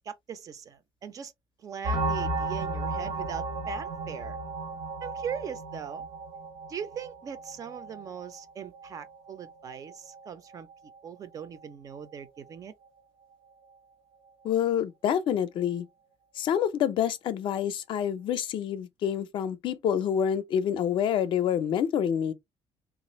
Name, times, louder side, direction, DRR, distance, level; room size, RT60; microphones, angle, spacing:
voice 1, 0.0-1.3 1.6-4.4 5.0-6.1 6.7-10.7 11.0-12.7, right 7 dB, 35° right, 0.4 m, -40 dB
sound 1, 1.8-11.2 11.4-11.6 11.9-12.1 12.4-12.6, right 2 dB, 65° right, 0.8 m, -35 dB
voice 2, 14.4-15.9 16.4-22.3, left 9 dB, 50° left, 0.4 m, -27 dB
3.2 x 2.4 x 2.9 m
cardioid pair, 175°, 11 cm